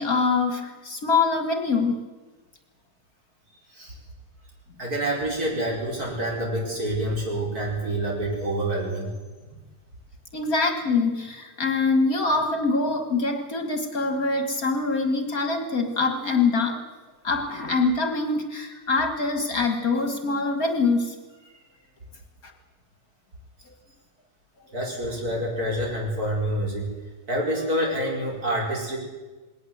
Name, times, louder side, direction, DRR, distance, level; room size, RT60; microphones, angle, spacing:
voice 1, 0.0-2.0 10.3-16.8 17.2-21.2 22.4-22.5, left 3 dB, 50° left, 6 dB, 2.0 m, -24 dB
voice 2, 4.8-9.1 24.7-26.9 27.3-29.0, right 1 dB, 50° right, -2 dB, 5.7 m, -27 dB
20.5 x 18.5 x 7.9 m, 1.3 s
omnidirectional pair, 2.1 m